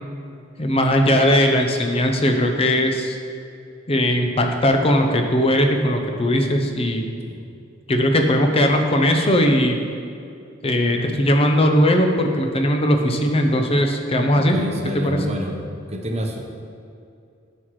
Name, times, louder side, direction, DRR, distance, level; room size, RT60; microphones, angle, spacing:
voice 1, 0.6-3.2 3.9-7.0 7.9-9.8 10.6-14.6 14.9-15.2, equal, 30° left, 4 dB, 0.7 m, -19 dB
voice 2, 14.3-15.6 15.9-16.4, equal, 35° right, 1 dB, 0.9 m, -29 dB
9.5 x 6.3 x 3.2 m, 2.4 s
head